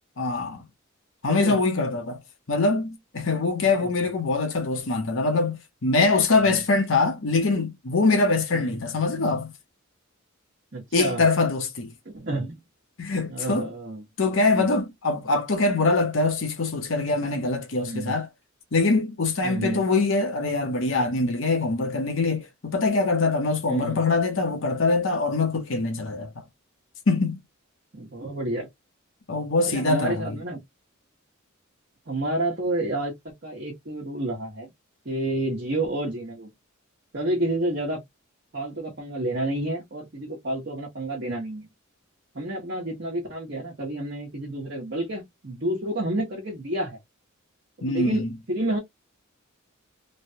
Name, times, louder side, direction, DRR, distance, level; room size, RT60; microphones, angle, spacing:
voice 1, 0.2-0.6 1.2-2.2 2.5-9.5 10.9-11.9 13.0-13.7 14.2-18.3 18.7-26.3 27.1-27.4 29.3-30.4 47.8-48.3, left 3 dB, 65° left, 0.8 m, -23 dB
voice 2, 10.7-11.2 12.0-12.6 13.3-14.0 14.3-14.6 17.8-18.2 19.4-19.8 23.7-24.0 27.9-28.7 29.6-30.6 32.1-33.1 33.4-34.7 35.0-36.5 37.1-38.0 38.5-41.7 42.3-47.0 47.8-48.8, right 1 dB, 50° right, 1.1 m, -30 dB
3.3 x 2.2 x 2.7 m
head